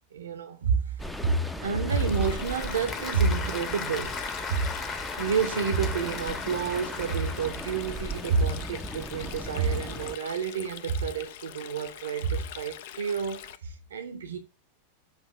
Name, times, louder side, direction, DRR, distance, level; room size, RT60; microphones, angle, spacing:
voice 1, 0.1-1.0 1.2-4.1 4.5-4.6 5.2-14.4, right 5 dB, 65° right, 0.8 m, -29 dB
sound 1, 1.0-10.2, equal, 5° left, 0.5 m, -39 dB
Stream, 1.9-13.6, left 11 dB, 55° left, 0.4 m, -44 dB
Applause / Crowd, 1.9-8.0, left 4 dB, 25° left, 1.0 m, -37 dB
6.9 x 2.7 x 5.3 m
figure-of-eight pair, 90°, 0 cm